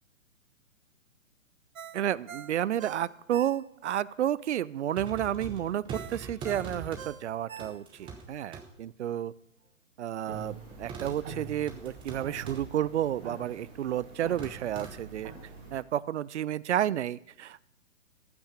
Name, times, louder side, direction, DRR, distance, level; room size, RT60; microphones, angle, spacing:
Ringtone, 1.7-4.0 4.4-4.5 5.9-8.2 8.6-8.7, right 8 dB, 75° right, 0.9 m, -45 dB
voice 1, 1.9-5.8 6.1-9.3 10.0-15.3 15.7-17.6, right 11 dB, 60° right, 21 dB, 0.5 m, -31 dB
sound 1, 4.9-7.1 7.6-8.3 8.5-8.6 10.7-11.2 11.7-12.7 13.3-13.6 14.4-14.9, right 5 dB, 10° right, 1.0 m, -42 dB
sound 2, 10.3-15.8, right 4 dB, 30° right, 3.1 m, -46 dB
13.5 x 6.0 x 6.6 m, 0.81 s
figure-of-eight pair, 130°, 41 cm